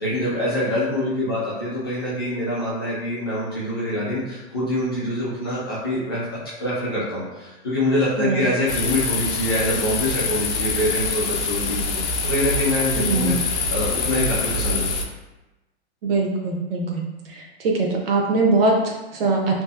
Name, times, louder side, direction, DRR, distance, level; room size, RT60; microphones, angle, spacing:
voice 1, 0.0-6.2 6.6-12.0 12.3-14.9, left 1 dB, 25° left, -10 dB, 0.4 m, -25 dB
sound 1, 8.7-15.0, left 4 dB, 85° left, 0.5 m, -25 dB
voice 2, 13.0-13.4 16.0-17.0 17.3-19.6, right 3 dB, 60° right, 0 dB, 0.6 m, -22 dB
2.7 x 2.3 x 2.4 m, 1.0 s
hypercardioid pair, 175°, 34 cm